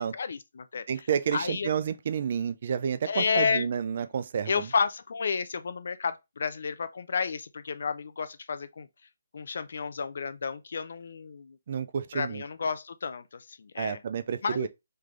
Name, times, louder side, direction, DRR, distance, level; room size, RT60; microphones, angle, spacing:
voice 1, 0.1-1.1 1.3-1.7 3.1-3.7 4.5-8.9 9.3-11.6 12.1-14.0 14.4-14.7, left 5 dB, 45° left, 0.4 m, -31 dB
voice 2, 0.9-4.7 11.7-12.4 13.8-14.7, right 7 dB, 30° right, 0.3 m, -30 dB
3.3 x 3.2 x 3.7 m
hypercardioid pair, 180°, 0 cm